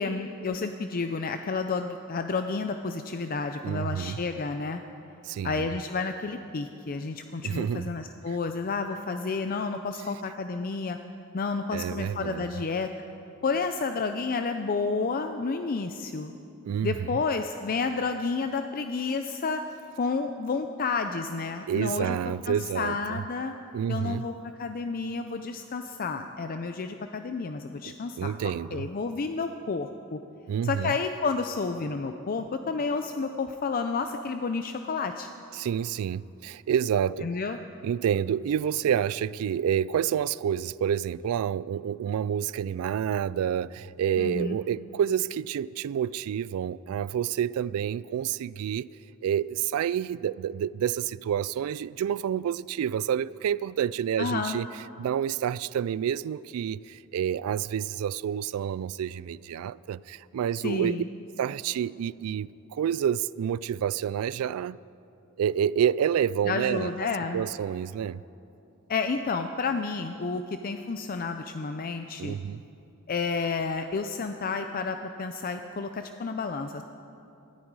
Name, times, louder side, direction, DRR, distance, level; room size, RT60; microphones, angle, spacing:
voice 1, 0.0-4.8 5.4-11.0 11.3-12.9 13.4-16.3 16.8-19.6 20.0-22.2 22.5-23.5 23.9-24.3 24.6-30.2 30.6-35.3 37.2-37.6 44.2-44.6 54.2-54.6 60.6-61.1 66.5-67.4 68.9-72.4 73.1-76.8, left 4 dB, 45° left, 0.5 m, -30 dB
voice 2, 3.6-4.2 5.2-5.7 7.4-7.8 8.3-8.4 11.7-12.5 16.7-17.2 21.7-23.2 23.7-24.3 27.9-28.9 30.5-31.0 35.5-37.3 37.8-48.9 49.2-54.7 55.0-61.0 61.4-64.8 65.4-66.9 67.3-68.2 72.2-72.6, right 9 dB, 80° right, 0.3 m, -28 dB
19.0 x 13.5 x 4.8 m
head